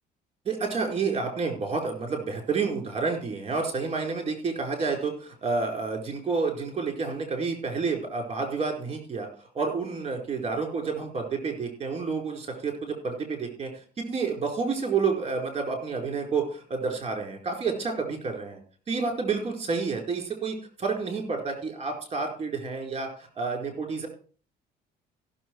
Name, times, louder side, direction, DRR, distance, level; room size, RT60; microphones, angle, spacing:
voice 1, 0.4-13.7 14.0-18.6 18.9-24.1, right 4 dB, 35° right, 3 dB, 4.6 m, -29 dB
15.0 x 7.0 x 4.7 m, 0.40 s
cardioid pair, 110°, 17 cm